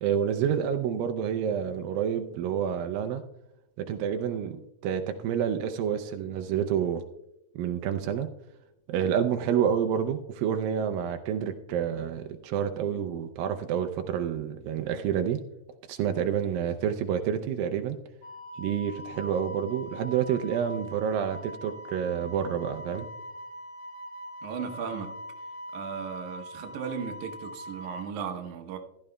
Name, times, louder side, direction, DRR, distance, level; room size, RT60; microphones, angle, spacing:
voice 1, 0.0-3.2 3.8-7.0 7.6-8.3 8.9-15.4 15.9-18.0 18.6-23.1, right 8 dB, 85° right, 2.4 m, -28 dB
Wind instrument woodwind instrument, 18.2-28.1, equal, 70° left, 1.5 m, -42 dB
voice 2, 24.4-25.1 25.7-28.8, right 7 dB, 70° right, 2.2 m, -36 dB
15.5 x 11.5 x 2.2 m
omnidirectional pair, 4.0 m